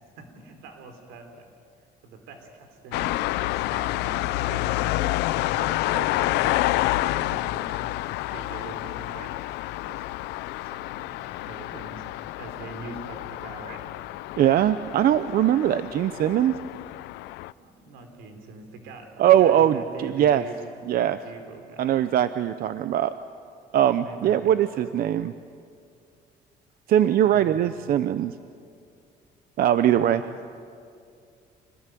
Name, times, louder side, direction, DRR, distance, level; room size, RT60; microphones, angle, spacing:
voice 1, 0.2-1.5 2.0-9.3 9.8-10.0 10.4-13.8 17.6-22.0 24.0-24.9 27.2-27.7 29.9-30.4, right 4 dB, 90° right, 5 dB, 4.0 m, -43 dB
sound 1, 2.9-17.5, left 17 dB, 90° left, 0.5 m, -29 dB
voice 2, 14.4-16.5 19.2-20.4 20.9-21.2 21.8-23.1 23.7-25.3 26.9-28.3 29.6-30.2, right 11 dB, 60° right, 12 dB, 0.7 m, -21 dB
26.0 x 19.5 x 9.2 m, 2.4 s
cardioid pair, 110°, 17 cm